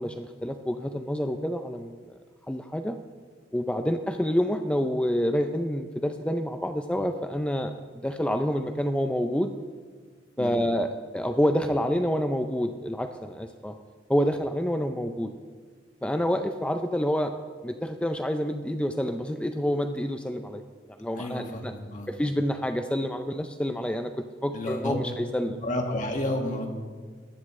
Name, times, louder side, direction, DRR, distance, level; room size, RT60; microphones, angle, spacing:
voice 1, 0.0-2.2 2.5-3.0 3.5-9.5 10.4-13.7 14.1-15.3 16.0-17.3 17.6-20.6 21.0-21.7 22.1-24.1 24.4-25.6, equal, 5° left, 6 dB, 0.4 m, -28 dB
voice 2, 21.2-22.1 24.5-25.0 25.6-26.7, left 1 dB, 45° left, 1 dB, 1.9 m, -31 dB
20.0 x 11.0 x 3.2 m, 1.5 s
head